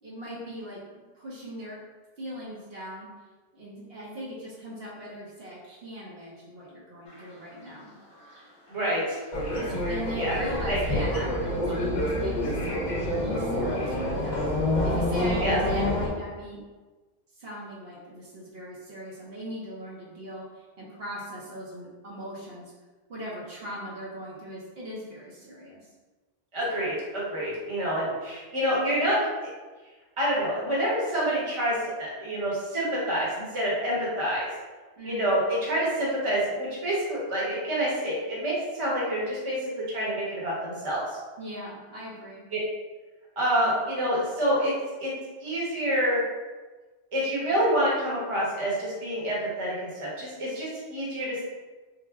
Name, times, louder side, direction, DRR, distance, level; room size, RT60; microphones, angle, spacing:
voice 1, 0.0-1.8 2.2-3.1 3.5-7.9 9.5-14.5 14.8-16.6 17.3-22.7 23.1-25.9 35.0-35.3 41.4-42.4, equal, 65° right, -6 dB, 1.0 m, -40 dB
sound 1, 7.1-14.4, right 3 dB, 25° left, 0.9 m, -44 dB
voice 2, 8.7-9.2 10.1-10.4 10.7-11.0 15.4-15.6 26.5-29.2 30.2-34.5 35.0-41.2 42.5-42.6 43.4-44.7 45.0-45.1 45.4-46.2 47.1-51.4, equal, 30° right, -6 dB, 0.9 m, -27 dB
sound 2, 9.3-16.1, left 1 dB, 50° left, 0.6 m, -27 dB
3.2 x 2.0 x 3.4 m, 1.3 s
omnidirectional pair, 1.1 m